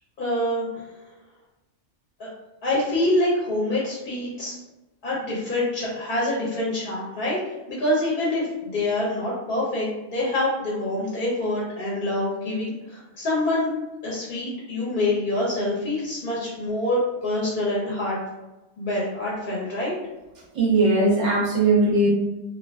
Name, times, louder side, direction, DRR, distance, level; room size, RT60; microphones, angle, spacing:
voice 1, 0.2-0.6 2.2-2.3 2.6-4.5 5.0-7.4 7.7-13.7 14.0-18.2 18.8-20.0, left 1 dB, 55° left, -5 dB, 0.6 m, -26 dB
voice 2, 20.5-22.1, right 2 dB, 40° right, -5 dB, 0.7 m, -19 dB
2.4 x 2.3 x 2.3 m, 1.0 s
omnidirectional pair, 1.4 m